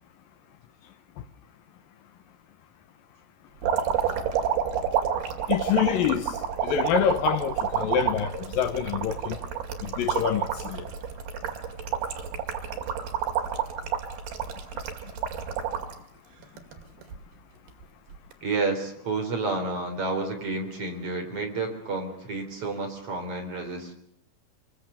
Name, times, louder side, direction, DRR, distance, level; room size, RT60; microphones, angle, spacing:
sound 1, 3.6-15.9 16.4-17.2 18.1-18.3, right 8 dB, 85° right, 4.2 m, -29 dB
voice 1, 5.5-6.2 6.6-9.4 9.8-10.8, left 9 dB, 75° left, 2.7 m, -26 dB
voice 2, 18.4-23.9, right 3 dB, 40° right, 4.5 m, -30 dB
26.0 x 23.5 x 6.9 m
omnidirectional pair, 4.3 m